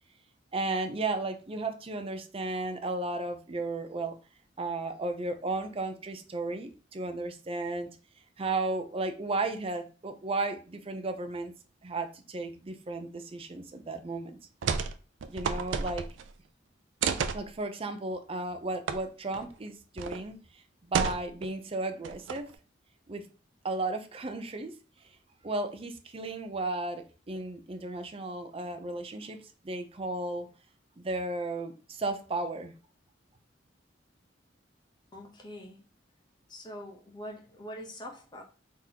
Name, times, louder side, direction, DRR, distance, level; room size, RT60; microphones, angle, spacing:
voice 1, 0.5-4.1 4.6-7.9 8.4-11.5 11.8-14.4 15.3-16.1 17.3-22.5 23.1-23.3 23.6-24.7 25.4-29.4 29.6-30.5 31.0-32.7, right 2 dB, 30° right, 0.5 m, -34 dB
sound 1, 14.6-15.0 15.2-16.3 17.0-17.4 18.9-19.0 19.3-19.4 20.0-20.2 20.9-21.5 22.0-22.6, right 5 dB, 80° right, 0.4 m, -31 dB
voice 2, 35.1-35.9 36.5-38.4, equal, 25° left, 0.8 m, -44 dB
3.9 x 3.6 x 2.8 m
head